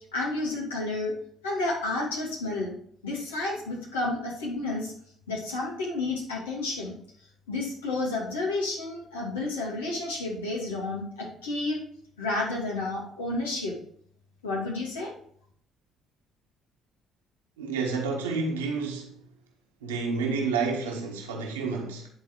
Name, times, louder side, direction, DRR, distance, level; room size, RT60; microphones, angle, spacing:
voice 1, 0.1-1.1 1.4-2.7 3.0-4.9 5.3-7.0 7.5-11.8 12.2-13.7 14.4-15.1, left 2 dB, 85° left, 2.4 m, -31 dB
voice 2, 17.6-19.1 19.8-22.1, right 4 dB, 85° right, 1.5 m, -29 dB
10.5 x 4.0 x 4.6 m
hypercardioid pair, 50°, 0 cm